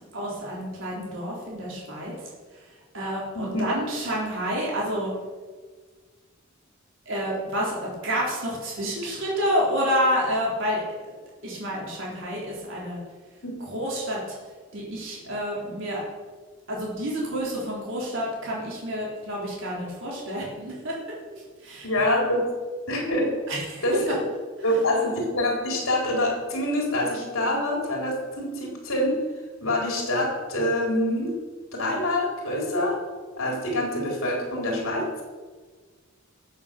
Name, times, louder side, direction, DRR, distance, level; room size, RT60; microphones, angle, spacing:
voice 1, 0.1-2.6 2.9-5.1 7.1-10.8 11.4-13.0 13.6-14.4 14.7-16.0 16.7-21.0 21.3-21.9 23.5-24.1, equal, 65° right, -4 dB, 3.8 m, -29 dB
voice 2, 3.4-3.7 13.4-13.5 21.8-22.5 22.9-23.3 23.8-24.0 24.6-29.2 29.6-31.3 31.7-33.0 33.4-35.2, left 1 dB, 70° left, 0 dB, 4.1 m, -25 dB
14.5 x 7.3 x 6.8 m, 1.5 s
head